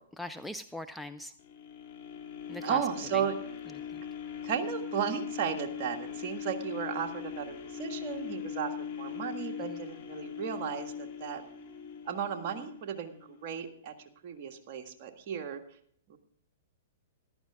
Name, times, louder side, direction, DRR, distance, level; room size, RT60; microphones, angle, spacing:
voice 1, 0.2-1.3 2.5-2.8 3.1-3.2 3.9-4.0 9.7-9.8, left 1 dB, ahead, 7 dB, 0.5 m, -40 dB
sound 1, 1.4-13.5 14.0-14.1, left 8 dB, 50° left, 3.0 m, -41 dB
voice 2, 2.6-3.4 4.4-11.4 12.0-13.9 14.2-15.6 16.1-16.2, right 8 dB, 45° right, 4 dB, 1.7 m, -35 dB
14.0 x 12.0 x 3.6 m, 0.62 s
hypercardioid pair, 120°, 0 cm